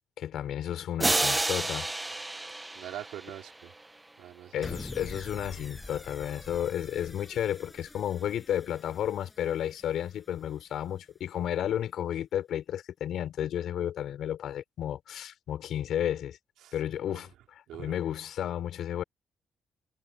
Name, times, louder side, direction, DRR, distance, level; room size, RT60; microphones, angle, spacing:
voice 1, 0.2-1.9 4.5-16.4 16.7-19.0, left 10 dB, 75° left, 4.4 m, -32 dB
sound 1, 1.0-3.7, right 2 dB, 15° right, 0.5 m, -30 dB
voice 2, 2.7-3.7 4.2-4.7 16.6-16.8 17.1-17.2 17.7-18.0, right 13 dB, 85° right, 3.3 m, -43 dB
sound 2, 4.6-11.0, left 2 dB, 10° left, 6.5 m, -46 dB
cardioid pair, 90°, 0 cm